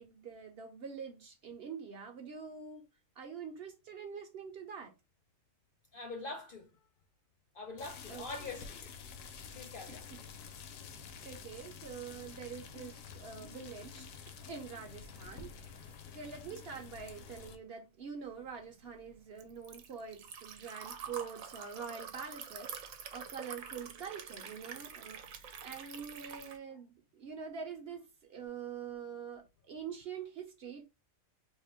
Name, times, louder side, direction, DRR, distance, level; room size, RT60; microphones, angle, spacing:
voice 1, 0.0-2.8 3.2-4.9 8.1-8.5 11.2-14.1 14.5-15.5 16.1-28.0 28.3-30.8, right 6 dB, 60° right, 0.7 m, -45 dB
voice 2, 5.9-6.7 7.5-8.9 9.5-10.1, left 3 dB, 55° left, 0.6 m, -44 dB
sound 1, 7.8-17.6, left 6 dB, 85° left, 1.1 m, -49 dB
Liquid, 18.3-26.6, right 7 dB, 90° right, 1.0 m, -47 dB
2.8 x 2.5 x 4.1 m
omnidirectional pair, 1.4 m